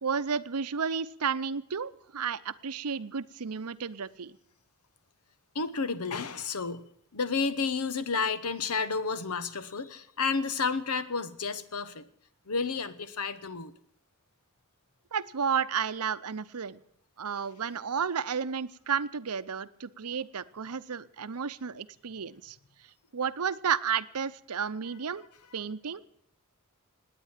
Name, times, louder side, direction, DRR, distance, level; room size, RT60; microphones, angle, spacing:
voice 1, 0.0-4.4 15.1-16.8 17.2-22.6 23.1-25.3 25.5-26.0, right 6 dB, 90° right, 15 dB, 0.8 m, -32 dB
voice 2, 5.5-6.8 7.1-12.0 12.5-13.7, left 4 dB, 85° left, 14 dB, 1.1 m, -31 dB
18.5 x 9.6 x 7.4 m, 0.66 s
head